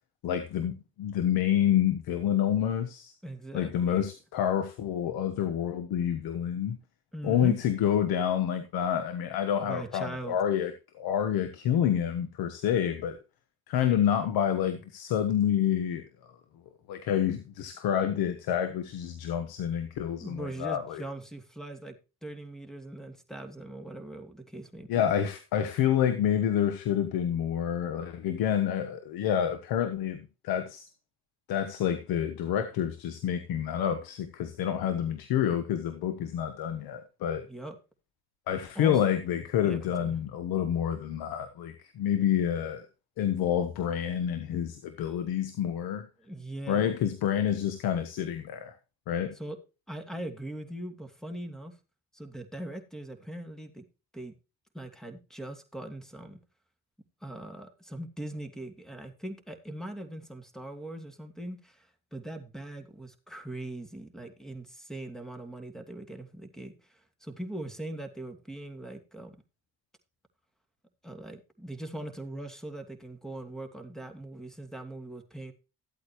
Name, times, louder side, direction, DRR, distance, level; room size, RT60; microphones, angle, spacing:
voice 1, 0.2-3.1 3.5-6.8 7.2-13.2 13.7-16.1 16.9-21.0 24.9-30.9 31.5-37.5 38.5-42.9 43.2-46.1 46.7-48.7 49.1-49.3, left 9 dB, 85° left, 1.3 m, -28 dB
voice 2, 3.2-4.1 7.1-7.6 9.6-10.4 20.2-22.0 22.2-25.1 37.5-37.8 38.7-39.0 39.6-40.1 46.2-46.9 49.3-49.6 49.9-51.8 52.1-53.8 54.1-54.3 54.7-56.4 57.2-69.4 71.0-75.5, right 1 dB, ahead, 2.6 m, -41 dB
14.5 x 8.6 x 3.1 m
supercardioid pair, 70°, 36 cm